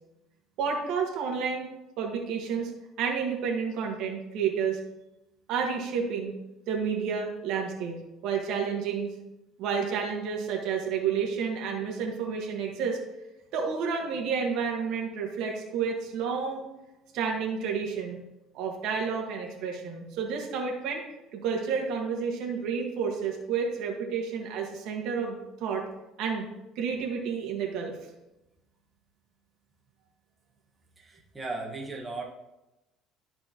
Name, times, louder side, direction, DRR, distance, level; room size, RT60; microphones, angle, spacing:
voice 1, 0.6-1.7 2.0-2.7 3.0-4.8 5.5-6.3 6.7-8.0 8.2-9.1 9.6-13.0 13.5-16.7 17.1-18.2 18.5-21.0 21.3-25.8 26.2-26.5 26.7-28.0, right 6 dB, 70° right, 1 dB, 1.5 m, -30 dB
voice 2, 31.0-32.2, right 3 dB, 15° right, -3 dB, 1.3 m, -36 dB
13.0 x 4.3 x 2.9 m, 0.96 s
cardioid pair, 130°, 0 cm